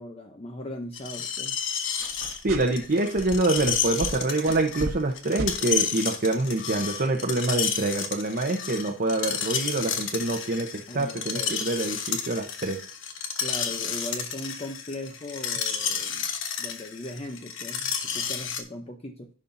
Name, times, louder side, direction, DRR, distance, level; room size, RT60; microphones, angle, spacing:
voice 1, 0.0-1.5 10.9-11.6 13.4-16.3 16.6-19.3, left 1 dB, 30° left, 4 dB, 0.7 m, -38 dB
Screech, 0.9-18.6, left 7 dB, 65° left, 1.2 m, -31 dB
sound 1, 2.0-2.9 3.2-5.1 5.4-5.6, right 1 dB, 70° right, 1.3 m, -35 dB
voice 2, 2.4-12.9, right 2 dB, 45° right, 1 dB, 0.9 m, -26 dB
11.0 x 5.5 x 2.6 m, 0.42 s
head